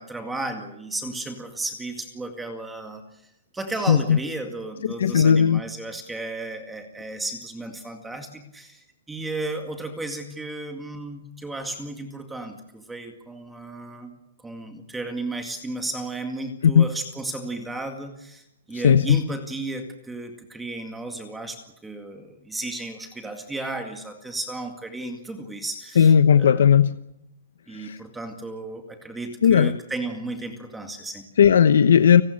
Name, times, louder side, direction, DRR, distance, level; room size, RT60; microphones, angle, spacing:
voice 1, 0.0-14.1 14.4-26.7 27.7-31.2, right 2 dB, 5° right, 4 dB, 2.1 m, -34 dB
voice 2, 3.9-4.2 4.8-5.6 16.6-16.9 18.7-19.2 26.0-26.9 27.7-28.0 29.4-29.8 31.4-32.2, left 8 dB, 75° left, 11 dB, 1.0 m, -16 dB
30.0 x 19.0 x 6.5 m, 0.83 s
hypercardioid pair, 170°, 0 cm